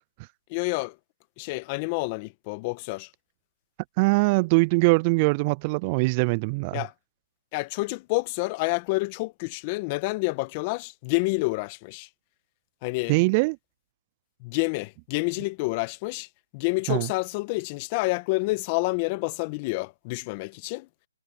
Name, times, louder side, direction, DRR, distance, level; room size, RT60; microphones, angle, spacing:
voice 1, 0.5-1.0 1.4-3.1 6.7-6.9 7.5-12.1 12.8-13.2 14.4-16.3 16.5-20.9, left 25 dB, 25° left, 1.5 m, -28 dB
voice 2, 4.0-6.8 13.1-13.6 16.9-17.1, right 28 dB, 25° right, 0.3 m, -22 dB
hypercardioid pair, 155°, 0 cm